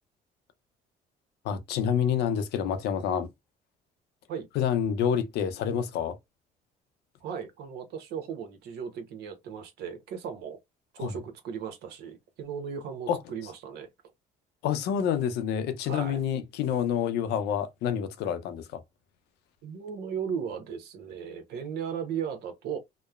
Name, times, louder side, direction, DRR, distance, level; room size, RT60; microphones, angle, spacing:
voice 1, 1.4-3.3 4.6-6.2 11.0-11.1 13.1-13.2 14.6-18.8, left 8 dB, 80° left, 0.6 m, -28 dB
voice 2, 7.2-10.6 10.9-13.9 15.8-16.2 19.6-22.8, right 7 dB, 75° right, 0.9 m, -36 dB
3.0 x 2.1 x 2.3 m
cardioid pair, 110°, 17 cm